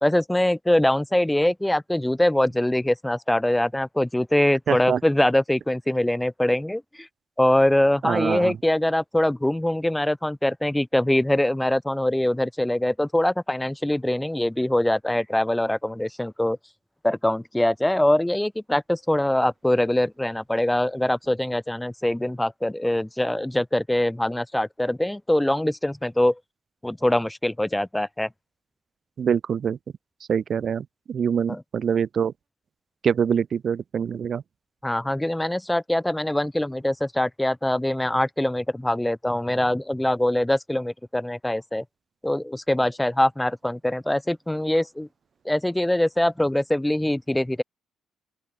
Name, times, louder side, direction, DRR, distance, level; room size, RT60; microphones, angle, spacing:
voice 1, 0.0-7.1 7.4-16.6 17.0-26.4 26.8-28.3 31.5-31.6 34.8-41.8 42.2-45.1 45.4-47.6, left 1 dB, 5° left, 1.5 m, -23 dB
voice 2, 4.7-5.0 8.0-8.6 29.2-29.8 30.3-32.3 33.0-34.4, right 7 dB, 50° right, 0.5 m, -24 dB
open air
cardioid pair, 90°, 0 cm